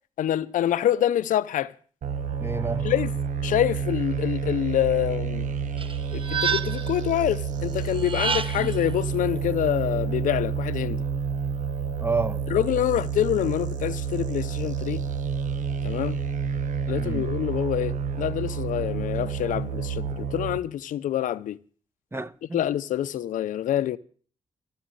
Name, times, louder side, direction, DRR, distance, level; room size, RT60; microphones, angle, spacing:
voice 1, 0.2-1.7 2.8-3.1 3.4-5.5 6.1-11.0 12.5-15.0 15.8-16.2 16.9-21.6 22.5-24.0, left 11 dB, 85° left, 0.6 m, -26 dB
sound 1, 2.0-20.6, right 6 dB, 75° right, 1.1 m, -29 dB
voice 2, 2.4-2.9 8.6-8.7 12.0-12.4 17.0-17.3 22.1-22.6, right 3 dB, 20° right, 1.1 m, -30 dB
sound 2, 5.8-7.0 7.9-8.8, right 6 dB, 40° right, 1.0 m, -29 dB
14.5 x 7.3 x 9.0 m
supercardioid pair, 50°, 13 cm